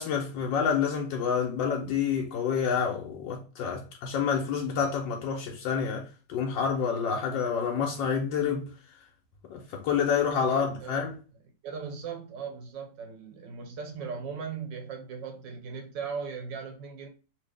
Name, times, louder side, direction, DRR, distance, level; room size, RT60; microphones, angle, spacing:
voice 1, 0.0-8.7 9.5-11.2, left 6 dB, 90° left, 1.4 m, -28 dB
voice 2, 10.5-11.0 11.6-17.1, right 6 dB, 80° right, 1.6 m, -38 dB
3.1 x 2.8 x 3.3 m
omnidirectional pair, 1.9 m